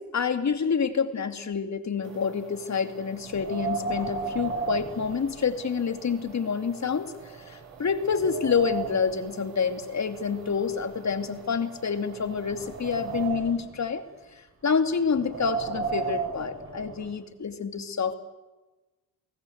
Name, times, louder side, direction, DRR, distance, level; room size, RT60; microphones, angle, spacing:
voice 1, 0.0-14.0 14.3-18.1, left 6 dB, 35° left, 8 dB, 2.6 m, -28 dB
sound 1, 2.0-13.3, right 7 dB, 70° right, 6.3 m, -48 dB
Wind, 3.3-5.9 6.2-6.3 7.0-7.1 7.6-9.2 10.1-11.6 12.2-13.8 15.0-17.2, right 4 dB, 30° right, 5.6 m, -34 dB
30.0 x 18.5 x 8.0 m, 1.2 s
supercardioid pair, 75°, 46 cm